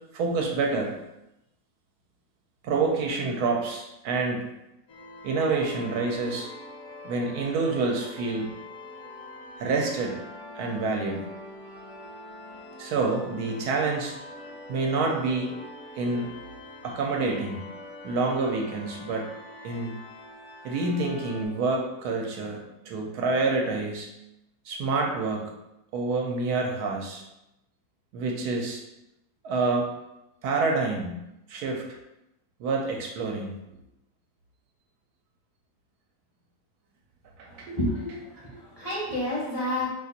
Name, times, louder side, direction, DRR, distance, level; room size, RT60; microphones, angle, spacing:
voice 1, 0.1-1.0 2.6-4.5 5.2-6.5 7.0-8.5 9.6-10.2 10.5-11.2 12.8-14.1 14.7-15.5 16.0-16.3 16.8-17.6 18.0-19.3 19.6-20.0 20.6-24.1 24.7-25.5 25.9-27.2 28.1-28.8 29.4-29.9 30.4-31.2 31.5-31.8 32.6-33.5 37.6-37.8, right 3 dB, 75° right, 0 dB, 1.1 m, -27 dB
sound 1, 4.9-21.5, left 2 dB, 65° left, 1.1 m, -44 dB
voice 2, 37.4-39.9, left 1 dB, 30° left, -7 dB, 0.6 m, -30 dB
2.9 x 2.5 x 3.9 m, 0.89 s
omnidirectional pair, 1.7 m